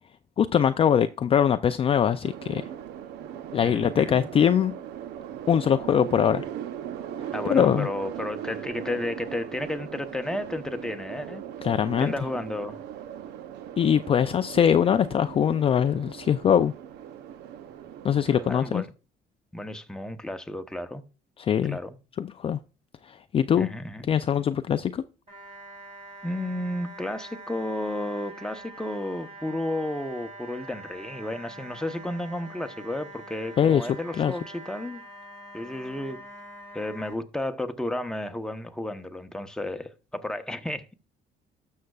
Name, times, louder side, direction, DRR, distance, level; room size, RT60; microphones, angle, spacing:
voice 1, 0.4-2.7 3.5-4.7 5.5-6.4 7.4-7.9 11.6-12.1 13.8-16.7 18.0-18.8 21.4-21.8 22.2-22.6 23.0-23.7 24.1-25.0 33.6-34.3, left 8 dB, 35° left, 0.4 m, -22 dB
sound 1, 2.2-18.8, right 10 dB, 80° right, 0.8 m, -39 dB
voice 2, 3.6-4.3 7.3-11.4 12.0-12.8 18.5-18.8 19.5-21.0 21.7-22.0 23.5-24.1 26.2-35.0 35.5-36.2 36.7-40.9, left 1 dB, 5° left, 0.8 m, -32 dB
sound 2, 25.3-37.1, right 2 dB, 35° right, 3.9 m, -44 dB
12.5 x 6.4 x 2.4 m
cardioid pair, 110°, 17 cm